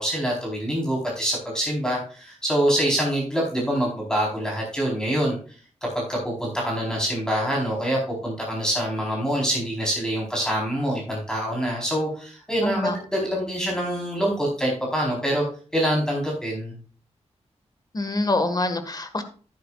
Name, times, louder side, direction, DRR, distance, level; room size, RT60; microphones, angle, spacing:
voice 1, 0.0-5.4 5.8-15.4 15.7-16.8, equal, 5° left, -3 dB, 4.2 m, -25 dB
voice 2, 12.6-13.0 17.9-19.2, left 2 dB, 35° left, 8 dB, 1.7 m, -25 dB
11.5 x 10.5 x 2.4 m, 0.41 s
wide cardioid pair, 105°, 12 cm